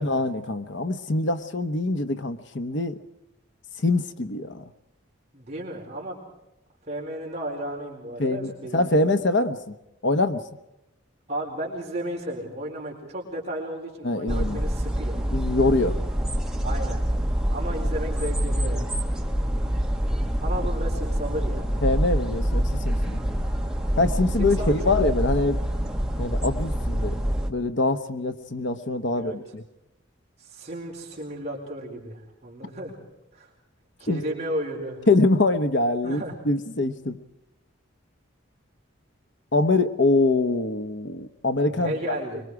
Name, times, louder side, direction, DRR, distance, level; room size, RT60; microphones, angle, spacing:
voice 1, 0.0-3.0 3.8-4.6 8.2-9.7 10.0-10.4 14.0-14.6 15.3-16.0 21.8-23.2 24.0-25.6 26.2-27.2 27.5-29.6 34.1-34.2 35.1-37.2 39.5-42.2, left 2 dB, 60° left, 9 dB, 1.0 m, -24 dB
voice 2, 5.3-6.2 6.9-9.1 11.3-15.2 16.6-17.0 17.5-19.0 20.4-21.7 24.4-24.9 29.1-29.4 30.4-32.9 33.3-33.5 34.0-35.1 36.0-36.4 41.7-42.4, right 1 dB, 35° right, -2 dB, 4.4 m, -33 dB
sound 1, 14.3-27.5, equal, 5° right, 1.4 m, -26 dB
25.0 x 23.0 x 4.8 m, 0.92 s
head